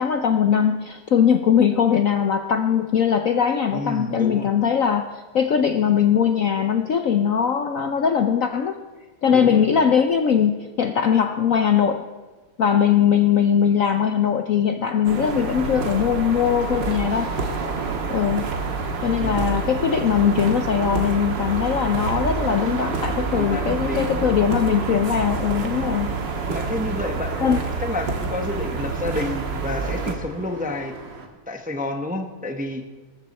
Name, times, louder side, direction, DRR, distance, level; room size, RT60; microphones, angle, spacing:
voice 1, 0.0-8.7 9.2-12.0 12.6-17.3 18.1-18.5 19.0-26.1 27.4-27.6, left 8 dB, 60° left, 7 dB, 0.9 m, -20 dB
voice 2, 3.7-4.5 9.3-9.7 19.2-19.5 23.3-24.2 26.5-30.9 31.5-32.8, left 1 dB, 5° right, 4 dB, 0.7 m, -30 dB
sound 1, 15.0-30.1, right 4 dB, 70° right, 2.3 m, -27 dB
sound 2, 17.1-31.3, right 3 dB, 45° right, 2.0 m, -41 dB
21.0 x 13.5 x 4.3 m, 1.3 s
omnidirectional pair, 2.1 m